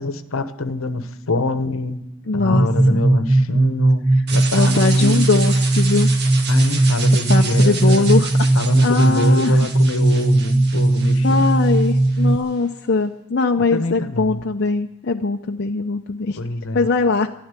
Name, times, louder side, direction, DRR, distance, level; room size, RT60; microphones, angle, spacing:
voice 1, 0.0-2.0 2.3-4.0 4.3-5.2 6.5-8.1 8.6-11.4 13.7-14.4 16.4-16.9, left 2 dB, 70° left, 1.1 m, -25 dB
voice 2, 2.3-3.0 4.5-6.1 7.3-8.5 8.8-9.7 11.2-16.4 16.7-17.3, left 3 dB, 50° left, 0.6 m, -21 dB
sound 1, 2.5-12.4, right 2 dB, 15° right, 0.8 m, -17 dB
sound 2, 4.3-12.3, right 5 dB, 50° right, 1.8 m, -31 dB
13.0 x 11.0 x 9.7 m
head